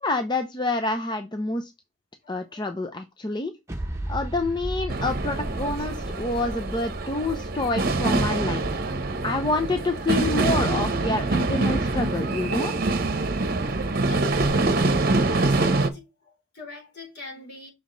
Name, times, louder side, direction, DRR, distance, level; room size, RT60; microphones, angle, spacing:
voice 1, 0.0-1.7 2.3-3.5 4.1-8.8 9.2-12.7, left 2 dB, 20° left, 0.6 m, -27 dB
voice 2, 2.2-2.7 12.4-12.6 13.9-14.6 15.4-17.7, left 2 dB, 50° left, 4.5 m, -42 dB
sound 1, 3.7-11.2, right 1 dB, 15° right, 1.1 m, -36 dB
sound 2, 4.9-15.9, right 2 dB, 45° right, 0.9 m, -25 dB
6.4 x 5.0 x 3.9 m
head